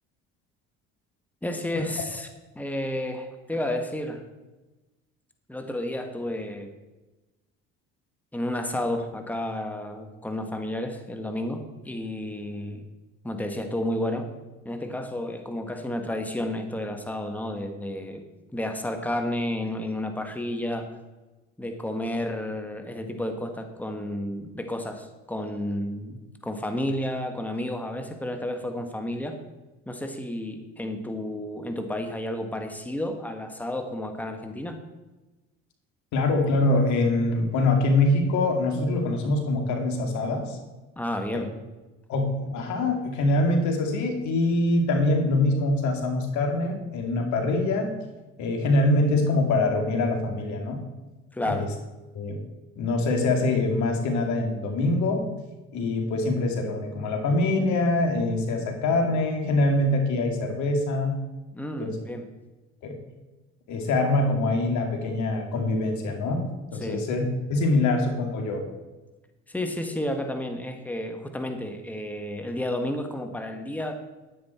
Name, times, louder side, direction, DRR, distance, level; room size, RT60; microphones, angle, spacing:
voice 1, 1.4-2.3 2.5-4.2 5.5-6.7 8.3-12.9 13.2-14.3 14.6-18.2 18.5-20.9 21.6-29.4 29.8-34.8 40.9-41.5 51.3-51.7 61.5-62.3 66.8-67.0 69.5-74.0, left 1 dB, 5° left, 5 dB, 1.7 m, -31 dB
voice 2, 36.1-40.6 41.3-41.4 42.1-47.9 48.4-50.8 51.4-51.7 52.1-52.4 52.8-55.2 55.7-61.2 61.8-61.9 62.8-63.0 63.7-66.4 66.7-68.6, left 2 dB, 65° left, 3 dB, 2.5 m, -24 dB
10.5 x 9.9 x 4.5 m, 1.1 s
hypercardioid pair, 65°, 31 cm